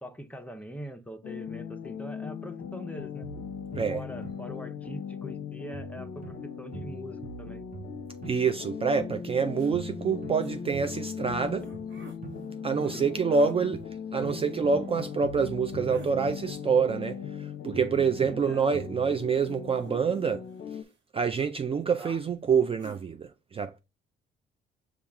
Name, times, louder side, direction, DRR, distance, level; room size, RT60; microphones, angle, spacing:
voice 1, 0.0-3.3 3.9-7.6 12.9-13.6 18.2-18.6, equal, 5° left, 0.7 m, -43 dB
sound 1, 1.2-20.8, left 7 dB, 60° left, 0.6 m, -39 dB
sound 2, 3.2-5.4 5.7-9.4 9.7-13.4 13.7-17.4 17.7-19.3, right 5 dB, 45° right, 0.8 m, -46 dB
voice 2, 8.3-11.7 12.6-13.8 14.1-20.4 21.1-23.8, right 5 dB, 30° right, 0.4 m, -27 dB
sound 3, 9.6-9.7 10.4-10.6 11.6-12.2 12.8-13.0 13.3-13.6 15.7-16.1 19.2-20.5 20.9-21.0 21.3-21.5 22.0-22.2 22.8-23.0, right 4 dB, 65° right, 1.1 m, -48 dB
5.7 x 2.4 x 3.5 m
cardioid pair, 90°, 20 cm